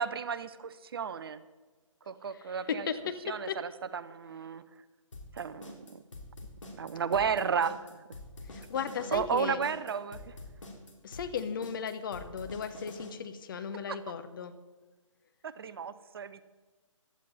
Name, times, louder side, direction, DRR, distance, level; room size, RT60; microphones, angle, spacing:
voice 1, 0.0-1.4 2.1-2.9 3.2-4.6 5.3-6.0 6.8-8.0 9.1-10.4 13.9-14.0 15.4-16.4, right 6 dB, 45° right, 15 dB, 0.7 m, -33 dB
voice 2, 2.7-3.6 8.5-9.6 11.0-14.5, left 7 dB, 40° left, 9 dB, 1.1 m, -36 dB
sound 1, 5.1-13.1, left 2 dB, 70° left, 3.1 m, -46 dB
15.5 x 11.5 x 4.2 m, 1.3 s
figure-of-eight pair, 140°, 17 cm